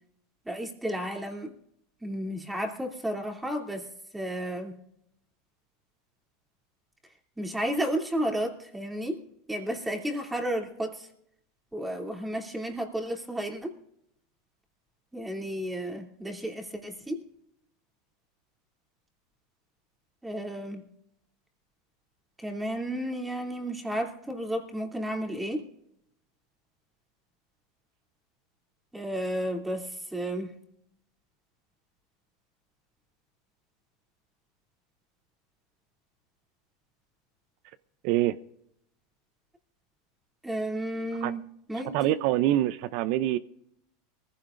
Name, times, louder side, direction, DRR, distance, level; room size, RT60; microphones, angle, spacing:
voice 1, 0.5-1.5 2.0-3.9 4.1-4.7 7.4-9.2 9.5-11.1 11.7-13.8 15.1-17.2 20.2-20.8 22.4-25.7 28.9-30.5 40.4-41.4 41.7-42.2, right 1 dB, 10° right, 2.8 m, -32 dB
voice 2, 38.0-38.4 41.2-41.3 41.9-43.4, right 14 dB, 60° right, 0.6 m, -25 dB
22.5 x 15.5 x 2.6 m
hypercardioid pair, 105°, 0 cm